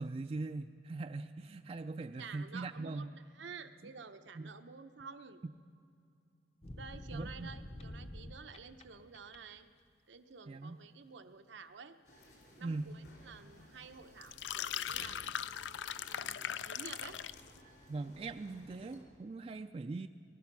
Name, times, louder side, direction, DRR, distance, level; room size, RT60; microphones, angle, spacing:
voice 1, 0.0-3.1 4.3-4.5 7.1-7.5 10.5-10.8 12.6-12.9 17.9-20.1, right 3 dB, 30° right, 7 dB, 0.3 m, -41 dB
voice 2, 2.2-5.4 6.7-9.7 10.1-12.0 12.6-15.2 16.0-17.2, right 5 dB, 85° right, 9 dB, 0.8 m, -51 dB
sound 1, 6.6-8.8 9.1-9.6, left 1 dB, 35° left, 0.7 m, -47 dB
sound 2, 12.0-19.0, left 1 dB, 65° left, 3.7 m, -58 dB
sound 3, 14.2-17.5, left 10 dB, 80° left, 0.4 m, -39 dB
19.5 x 12.0 x 6.0 m, 2.5 s
head